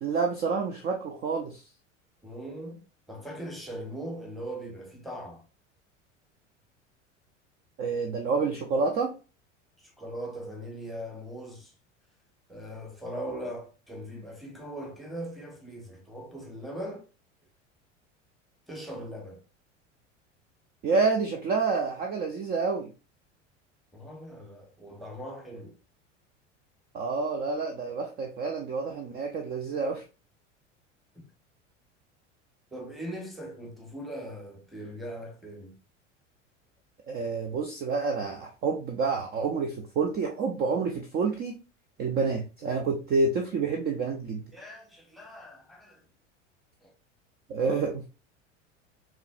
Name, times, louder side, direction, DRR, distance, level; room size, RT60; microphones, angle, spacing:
voice 1, 0.0-1.6 7.8-9.1 20.8-22.9 26.9-30.0 37.1-41.6 42.0-44.4 47.5-47.9, right 4 dB, 25° right, 0.5 m, -28 dB
voice 2, 2.2-2.8 3.1-5.4 9.8-11.7 12.5-17.1 18.7-19.4 23.9-25.7 32.7-35.7 44.5-46.0 46.8-46.9 47.6-47.8, equal, ahead, 1.0 m, -40 dB
5.5 x 2.2 x 2.4 m
figure-of-eight pair, 75°, 37 cm